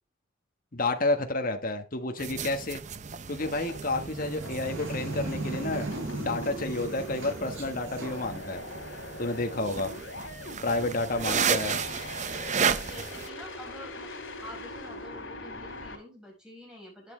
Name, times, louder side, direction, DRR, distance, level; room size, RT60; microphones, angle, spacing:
voice 1, 0.7-2.8 3.3-5.9 6.2-8.6 9.2-9.9 10.6-11.8, left 2 dB, 45° left, 5 dB, 1.4 m, -30 dB
sound 1, 2.2-13.3, right 6 dB, 40° right, 0.6 m, -33 dB
sound 2, 3.4-16.0, left 1 dB, 70° left, 4.5 m, -41 dB
sound 3, 4.0-9.3, right 1 dB, 80° right, 5.4 m, -44 dB
voice 2, 12.6-14.1 14.4-17.1, left 1 dB, 5° right, -1 dB, 5.9 m, -47 dB
11.5 x 8.8 x 3.3 m, 0.28 s
head